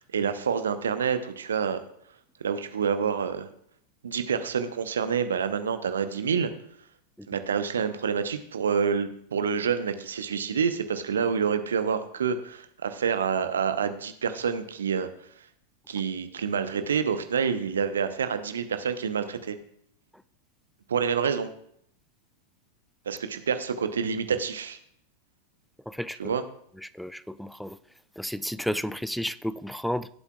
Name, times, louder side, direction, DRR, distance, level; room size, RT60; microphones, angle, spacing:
voice 1, 0.0-1.8 2.4-3.5 4.0-6.5 7.3-15.1 15.9-19.6 20.9-21.5 23.1-24.8 26.2-26.4, right 6 dB, 65° right, 0.8 m, -27 dB
voice 2, 25.9-26.3 26.8-27.8 28.2-30.1, equal, ahead, 0.4 m, -32 dB
17.0 x 8.2 x 2.4 m
figure-of-eight pair, 90°, 0 cm